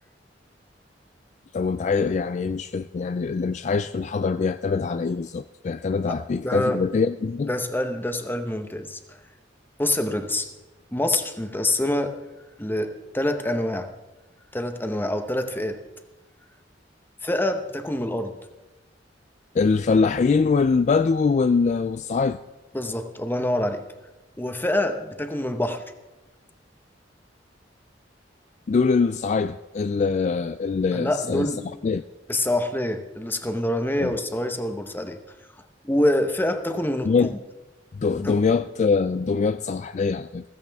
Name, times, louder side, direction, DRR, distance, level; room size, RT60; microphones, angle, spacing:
voice 1, 1.5-7.5 19.5-22.4 28.7-31.5 31.8-32.0 34.0-34.1 37.1-37.3 37.9-40.4, left 4 dB, 40° left, 0.3 m, -23 dB
voice 2, 6.1-6.8 7.5-9.0 9.8-10.5 10.9-12.2 12.6-13.9 14.5-15.8 17.2-18.3 22.7-23.8 24.4-25.8 30.9-31.6 32.3-35.2 35.8-37.4 38.1-38.4, left 1 dB, 10° left, 0.9 m, -26 dB
15.5 x 15.0 x 3.5 m
head